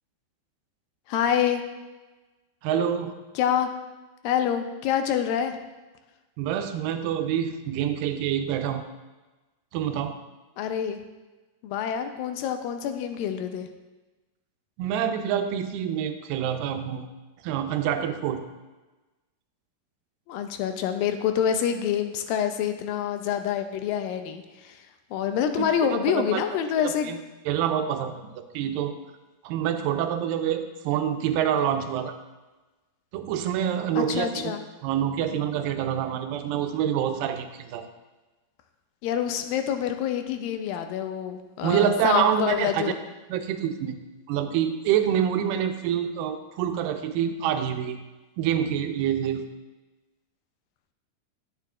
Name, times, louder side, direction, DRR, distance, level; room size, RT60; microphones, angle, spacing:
voice 1, 1.1-1.6 3.4-3.7 4.2-5.6 10.6-11.0 11.6-13.7 20.3-27.1 34.0-34.6 39.0-43.0, left 9 dB, 85° left, 7 dB, 2.3 m, -27 dB
voice 2, 2.6-3.1 6.4-8.8 9.7-10.2 14.8-17.1 17.4-18.4 25.9-26.4 26.8-27.2 27.5-28.9 29.4-32.2 33.1-34.6 34.8-37.8 41.6-42.9 43.3-44.0 44.3-48.0 48.4-49.4, right 9 dB, 85° right, 8 dB, 2.2 m, -26 dB
11.5 x 6.7 x 2.4 m, 1.2 s
omnidirectional pair, 4.0 m